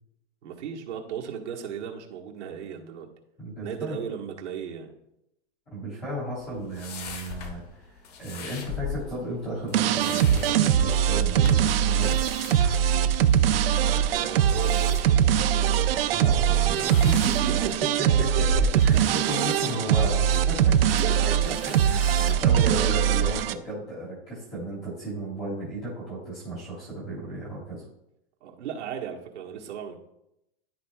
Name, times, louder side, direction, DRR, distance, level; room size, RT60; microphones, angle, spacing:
voice 1, 0.4-3.1 3.6-4.9 14.1-15.8 17.8-18.1 18.3-18.4 18.9-19.0 20.8-21.1 21.5-21.6 21.9-23.2 28.4-30.0, right 8 dB, 90° right, 0 dB, 1.6 m, -36 dB
voice 2, 3.4-4.0 5.7-7.6 8.2-12.1 16.1-17.7 18.4-18.5 18.8-20.9 21.6-27.8, right 1 dB, 5° left, -10 dB, 0.3 m, -34 dB
sound 1, 6.4-23.3, left 7 dB, 35° left, 0.7 m, -40 dB
sound 2, 9.7-23.5, right 9 dB, 60° right, 0.5 m, -22 dB
12.5 x 4.4 x 2.4 m, 0.83 s
supercardioid pair, 180°, 34 cm